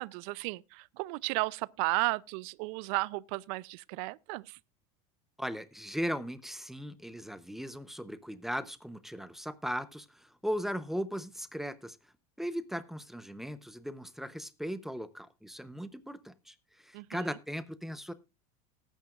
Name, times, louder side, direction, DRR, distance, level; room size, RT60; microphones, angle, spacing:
voice 1, 0.0-4.6 16.9-17.3, right 24 dB, 65° right, 0.5 m, -34 dB
voice 2, 5.4-12.0 12.4-18.1, equal, ahead, 0.8 m, -38 dB
19.0 x 9.1 x 2.4 m
supercardioid pair, 140°, 20 cm